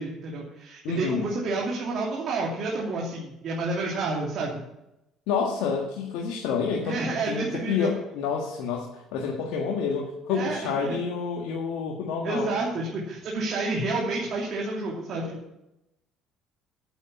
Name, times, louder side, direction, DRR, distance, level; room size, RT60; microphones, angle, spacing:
voice 1, 0.0-4.6 6.8-7.9 10.3-10.6 10.8-11.0 12.2-15.4, right 3 dB, 55° right, -3 dB, 2.8 m, -29 dB
voice 2, 0.8-1.3 5.3-12.5, left 5 dB, 75° left, -1 dB, 1.7 m, -29 dB
9.0 x 8.4 x 8.5 m, 0.90 s
supercardioid pair, 75°, 0 cm